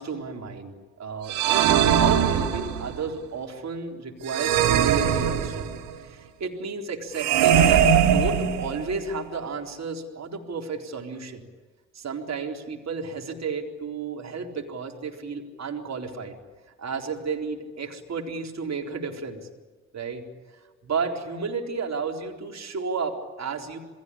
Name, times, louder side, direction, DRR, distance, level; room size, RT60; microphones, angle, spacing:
voice 1, 0.0-5.7 6.0-11.4 11.9-16.4 16.8-19.5 19.9-20.2 20.5-23.8, right 5 dB, 40° right, 2 dB, 4.0 m, -32 dB
sound 1, 1.3-3.0 4.3-5.9 7.1-9.0, right 8 dB, 65° right, 1.7 m, -21 dB
28.0 x 21.0 x 8.8 m, 1.4 s
figure-of-eight pair, 40°, 41 cm